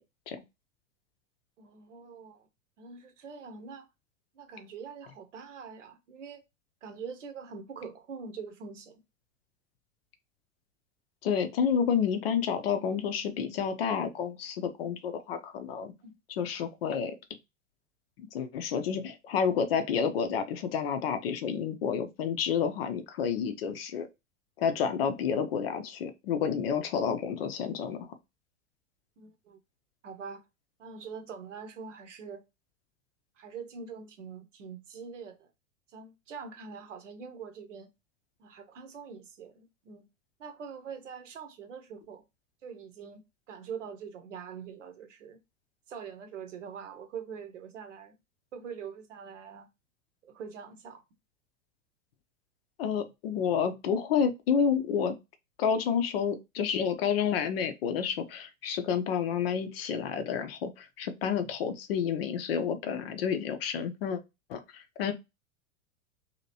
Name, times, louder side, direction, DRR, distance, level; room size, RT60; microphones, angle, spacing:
voice 1, 1.6-2.5 2.8-3.9 4.3-6.4 6.8-9.0 16.0-16.1 29.2-29.6 30.0-30.4 30.8-32.4 33.4-35.5 35.9-37.9 38.4-40.0 40.4-42.2 42.6-43.2 43.5-45.4 45.9-48.2 48.5-49.7 50.2-51.0, right 6 dB, 65° right, 0.9 m, -44 dB
voice 2, 11.2-15.9 16.4-17.1 18.3-24.1 24.6-28.0 52.8-55.2 55.6-64.2 64.5-65.1, left 7 dB, 45° left, 0.6 m, -30 dB
2.9 x 2.8 x 2.7 m
figure-of-eight pair, 90°, 41 cm